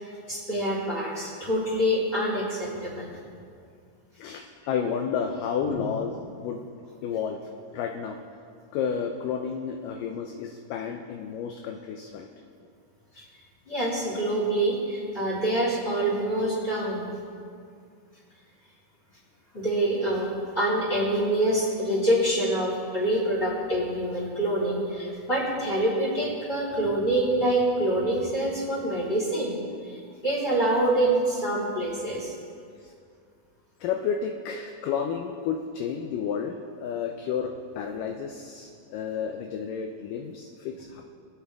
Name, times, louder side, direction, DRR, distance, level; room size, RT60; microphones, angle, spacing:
voice 1, 0.0-3.0 5.7-5.8 13.7-17.1 19.5-29.6 29.8-30.0 30.2-32.3, right 1 dB, 15° left, -7 dB, 3.8 m, -26 dB
voice 2, 4.2-6.6 7.0-7.4 7.7-8.2 8.7-12.3 32.8-32.9 33.8-41.0, left 7 dB, 80° left, 4 dB, 2.0 m, -31 dB
23.5 x 8.4 x 3.5 m, 2.3 s
omnidirectional pair, 4.5 m